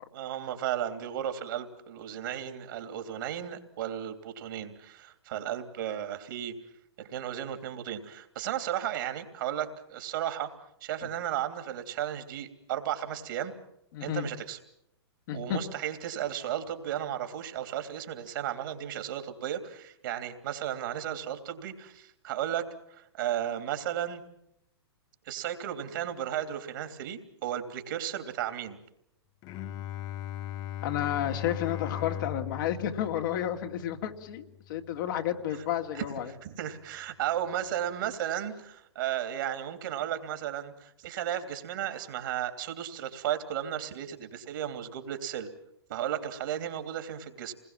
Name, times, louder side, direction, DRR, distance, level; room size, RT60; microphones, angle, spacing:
voice 1, 0.1-6.5 7.0-10.5 10.8-13.5 14.0-14.6 15.3-24.2 25.2-28.8 35.9-36.0 36.4-45.5 45.9-47.5, right 10 dB, 50° right, 8 dB, 3.1 m, -34 dB
voice 2, 13.9-14.3 15.3-15.6 30.8-36.3, left 10 dB, 50° left, 4 dB, 2.4 m, -31 dB
Bowed string instrument, 29.4-35.2, left 12 dB, 30° left, 1.0 m, -39 dB
28.5 x 21.0 x 7.5 m, 0.77 s
figure-of-eight pair, 115°, 14 cm